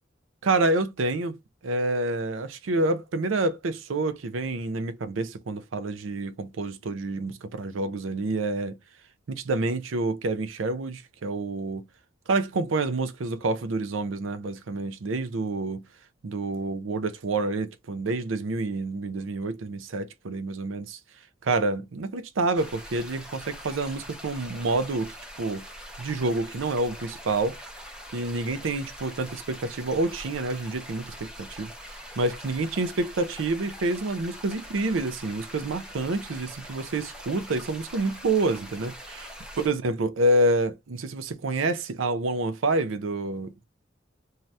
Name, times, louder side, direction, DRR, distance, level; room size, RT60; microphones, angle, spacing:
voice 1, 0.4-1.4 1.6-8.8 9.3-11.8 12.3-15.8 16.2-21.0 21.4-25.6 26.0-27.6 28.1-31.7 32.2-43.5, right 2 dB, 85° right, 0.5 m, -28 dB
sound 1, 22.5-39.7, equal, 5° right, 0.6 m, -43 dB
2.7 x 2.4 x 3.1 m
head